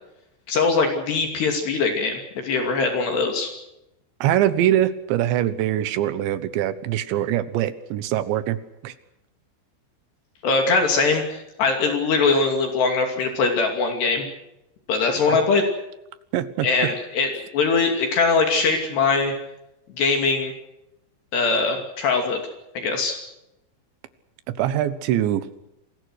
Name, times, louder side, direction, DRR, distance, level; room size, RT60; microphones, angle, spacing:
voice 1, 0.5-3.5 10.4-14.3 14.9-15.6 16.6-19.3 20.0-20.5 21.3-22.4 22.8-23.2, left 4 dB, 60° left, 4 dB, 4.5 m, -21 dB
voice 2, 4.2-8.6 8.8-8.9 16.3-16.7 24.6-25.5, right 12 dB, 70° right, 13 dB, 3.2 m, -23 dB
28.0 x 21.0 x 6.4 m, 0.89 s
omnidirectional pair, 5.9 m